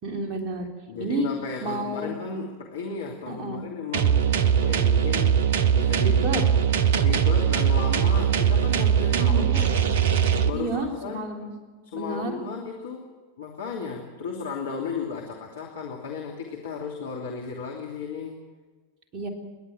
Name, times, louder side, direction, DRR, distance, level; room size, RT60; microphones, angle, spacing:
voice 1, 0.0-0.7 1.0-1.3 1.6-2.1 3.3-3.7 6.0-6.4 9.1-9.5 10.5-11.5 11.9-12.4 19.1-19.3, right 3 dB, 30° right, 2 dB, 3.7 m, -30 dB
voice 2, 0.9-5.4 5.7-6.6 7.0-9.7 10.4-11.3 11.8-13.1 13.4-18.4, left 5 dB, 65° left, -1 dB, 2.9 m, -35 dB
sound 1, 3.9-10.5, right 8 dB, 55° right, 1.2 m, -21 dB
27.5 x 11.5 x 9.1 m, 1.4 s
figure-of-eight pair, 90°, 0 cm